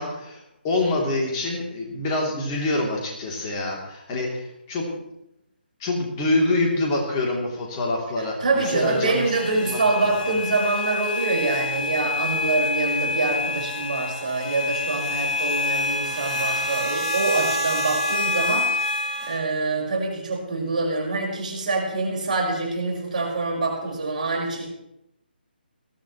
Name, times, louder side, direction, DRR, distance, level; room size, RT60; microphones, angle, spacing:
voice 1, 0.0-4.8 5.8-9.2 9.5-10.4, left 2 dB, 20° left, -1 dB, 3.0 m, -26 dB
voice 2, 8.4-24.7, right 3 dB, 50° right, -1 dB, 5.2 m, -25 dB
sound 1, 8.6-19.4, left 2 dB, 45° left, 4.9 m, -27 dB
20.5 x 15.5 x 3.1 m, 0.83 s
figure-of-eight pair, 145°, 6 cm